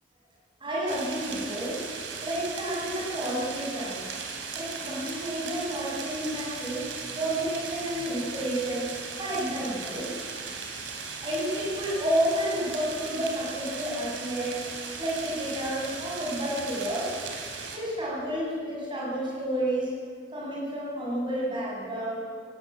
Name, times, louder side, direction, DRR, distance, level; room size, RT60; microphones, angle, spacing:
voice 1, 0.6-1.8 2.2-4.0 4.5-6.8 7.1-8.9 9.2-10.1 11.2-17.1 17.7-19.9 20.3-22.2, right 1 dB, 25° right, -5 dB, 7.2 m, -30 dB
sound 1, 0.9-17.8, right 5 dB, 80° right, 3.3 m, -37 dB
18.0 x 16.5 x 8.8 m, 2.1 s
head